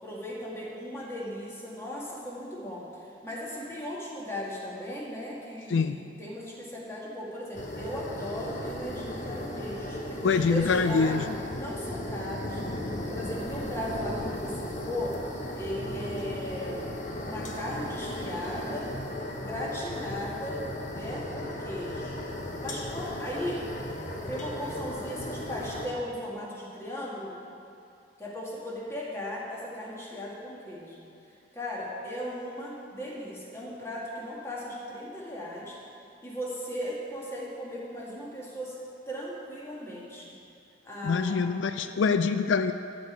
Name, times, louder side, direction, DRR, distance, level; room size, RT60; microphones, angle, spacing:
voice 1, 0.0-2.8 3.2-11.2 11.5-12.6 13.1-15.2 15.6-16.9 17.2-18.9 19.4-20.6 20.9-22.2 22.6-23.6 24.2-27.4 28.2-31.0 31.5-35.8 36.2-38.8 39.1-40.3 40.8-41.4, equal, 15° left, -5 dB, 2.1 m, -37 dB
sound 1, 7.5-25.9, left 1 dB, 40° left, 1.1 m, -36 dB
voice 2, 10.2-11.4 41.0-42.7, left 5 dB, 80° left, 9 dB, 0.4 m, -25 dB
12.0 x 5.3 x 8.2 m, 2.6 s
head